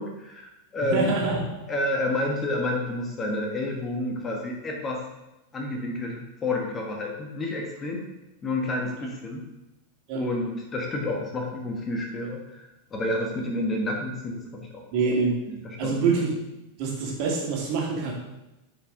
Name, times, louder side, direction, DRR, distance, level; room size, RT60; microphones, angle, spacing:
voice 1, 0.0-1.1 1.7-5.0 5.5-8.0 8.4-9.4 10.1-14.8 15.6-16.0, left 1 dB, 20° left, 1 dB, 1.2 m, -29 dB
voice 2, 0.8-1.4 10.1-10.2 14.9-15.3 15.8-16.4 16.8-18.1, right 4 dB, 45° right, -3 dB, 2.4 m, -25 dB
10.0 x 5.1 x 3.7 m, 0.96 s
figure-of-eight pair, 90°, 0 cm